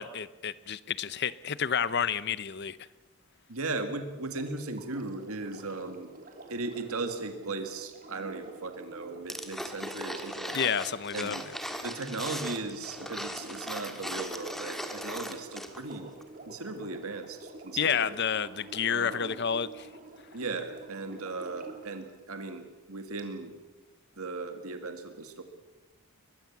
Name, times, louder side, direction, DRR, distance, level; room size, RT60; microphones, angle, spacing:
voice 1, 0.0-2.8 10.5-11.4 17.8-19.9, left 7 dB, 50° left, 0.7 m, -30 dB
voice 2, 3.5-6.1 6.5-10.7 11.1-11.4 11.8-16.1 16.5-18.2 18.9-19.4 20.3-23.5 24.2-25.4, right 3 dB, 75° right, 2.1 m, -37 dB
Sink (filling or washing), 4.2-22.0 23.2-23.3, right 2 dB, 40° right, 3.5 m, -48 dB
sound 1, 9.3-15.9 16.2-16.3, equal, ahead, 1.7 m, -38 dB
22.5 x 22.0 x 7.3 m
head